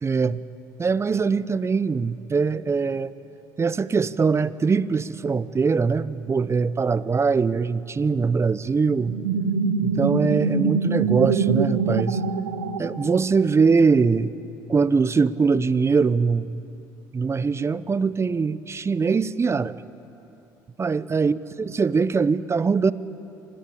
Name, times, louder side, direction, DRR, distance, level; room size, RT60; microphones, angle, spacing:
voice 1, 0.0-0.4 0.8-3.1 3.6-9.2 9.8-12.2 12.8-14.3 14.7-16.6 17.1-19.8 20.8-22.9, right 5 dB, 30° right, 17 dB, 0.8 m, -22 dB
sound 1, 9.1-13.5, right 5 dB, 85° right, 1.0 m, -24 dB
26.0 x 18.5 x 8.6 m, 2.9 s
hypercardioid pair, 60°, 10 cm